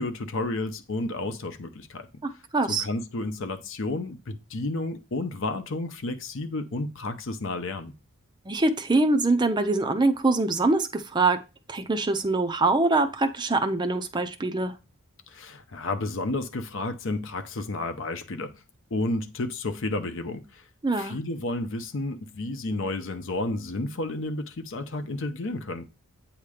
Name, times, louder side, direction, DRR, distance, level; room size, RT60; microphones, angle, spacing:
voice 1, 0.0-2.1 2.7-7.9 15.3-18.6 18.9-20.6 21.0-25.9, left 2 dB, 60° left, 0.7 m, -31 dB
voice 2, 2.2-2.8 8.5-11.4 11.7-14.7 20.8-21.1, right 2 dB, 20° right, 0.5 m, -24 dB
8.4 x 2.9 x 4.9 m
head